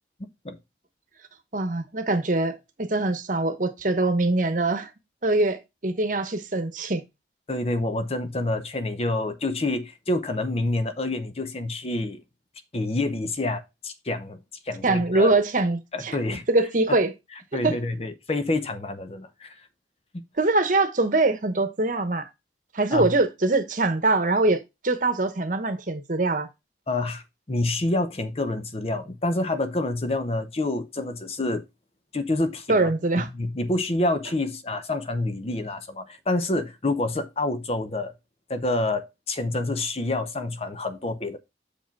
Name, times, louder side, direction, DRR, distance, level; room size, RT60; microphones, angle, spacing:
voice 1, 0.2-0.6 7.5-12.2 12.7-14.4 14.6-15.3 15.9-16.5 16.9-17.0 17.5-19.6 22.9-23.2 26.9-31.6 32.1-32.9 33.2-38.1 38.5-41.4, left 2 dB, 35° left, 0.7 m, -27 dB
voice 2, 1.5-4.9 5.2-7.0 14.8-16.2 16.5-17.1 17.6-17.8 20.4-22.3 22.7-26.5 32.7-33.3, right 2 dB, 45° right, 1.0 m, -23 dB
6.9 x 5.0 x 4.5 m
head